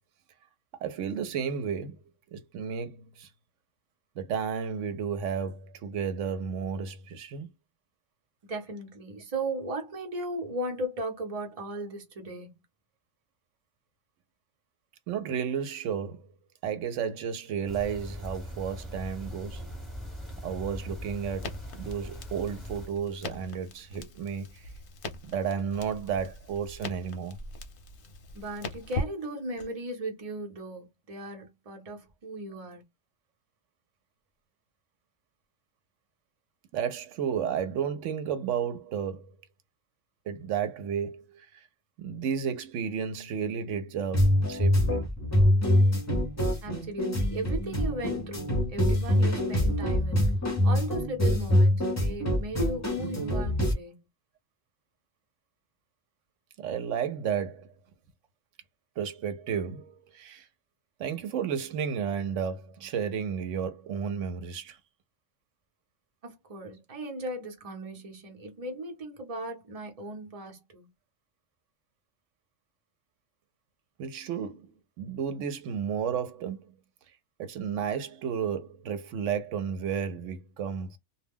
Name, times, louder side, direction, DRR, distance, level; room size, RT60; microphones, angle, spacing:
voice 1, 0.8-2.0 2.3-3.3 4.2-7.5 15.1-16.3 16.6-19.6 20.4-21.5 21.8-24.7 25.3-27.4 36.7-39.3 40.3-41.6 42.0-45.1 56.6-57.7 59.0-60.5 61.0-64.8 74.0-74.7 75.0-76.7 77.4-81.0, right 7 dB, 85° right, 0.9 m, -32 dB
voice 2, 8.5-12.5 28.3-32.8 46.6-50.3 50.6-54.0 66.2-70.9, right 1 dB, 35° right, 0.8 m, -37 dB
sound 1, 17.7-22.9, equal, ahead, 1.1 m, -41 dB
Crackle, 21.4-29.7, left 2 dB, 55° left, 0.8 m, -41 dB
sound 2, 44.1-53.7, left 1 dB, 15° left, 0.7 m, -25 dB
2.2 x 2.1 x 3.4 m
omnidirectional pair, 1.2 m